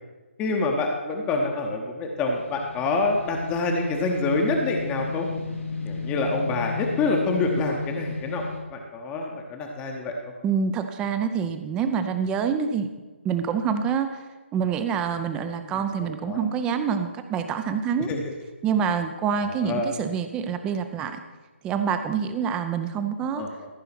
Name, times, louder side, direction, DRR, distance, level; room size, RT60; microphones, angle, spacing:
voice 1, 0.4-5.3 5.8-10.1 15.6-16.5 18.1-18.2 19.4-19.9 23.3-23.5, left 3 dB, 15° left, 1 dB, 0.9 m, -27 dB
sound 1, 2.3-8.7, left 5 dB, 90° left, 2.1 m, -34 dB
voice 2, 10.4-12.9 13.2-14.2 14.5-18.1 18.6-21.2 21.6-23.4, right 7 dB, 10° right, 9 dB, 0.6 m, -26 dB
14.0 x 5.6 x 5.9 m, 1.3 s
figure-of-eight pair, 145°, 7 cm